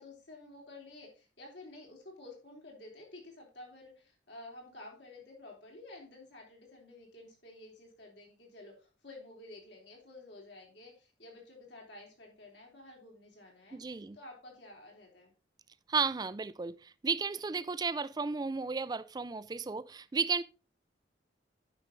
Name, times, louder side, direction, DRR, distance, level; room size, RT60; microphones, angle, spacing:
voice 1, 0.0-15.3, left 2 dB, 70° left, 3.3 m, -51 dB
voice 2, 13.7-14.2 15.9-20.4, right 5 dB, 20° right, 0.3 m, -33 dB
10.0 x 5.8 x 3.8 m
head